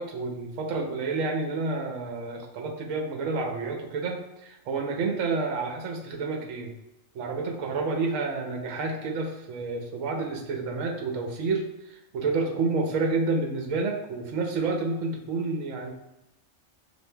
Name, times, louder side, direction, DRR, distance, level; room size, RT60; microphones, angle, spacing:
voice 1, 0.0-6.7 7.1-15.9, right 3 dB, 75° right, 2 dB, 1.0 m, -29 dB
6.2 x 2.6 x 2.2 m, 0.89 s
omnidirectional pair, 1.4 m